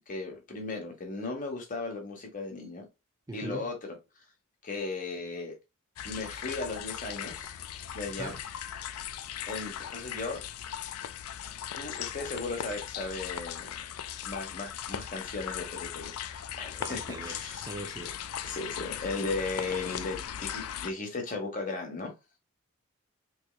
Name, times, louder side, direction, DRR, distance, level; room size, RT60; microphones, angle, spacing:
voice 1, 0.0-2.9 3.3-3.9 4.6-5.5 6.0-7.5 7.9-8.3 9.5-10.4 11.7-13.8 14.2-17.7 18.0-18.1 18.4-22.1, left 3 dB, 40° left, 1.2 m, -36 dB
voice 2, 3.3-3.7 8.2-8.4 16.8-18.1, right 2 dB, 15° right, 0.4 m, -41 dB
sound 1, 6.0-20.9, left 10 dB, 90° left, 0.4 m, -38 dB
4.4 x 3.1 x 2.3 m
head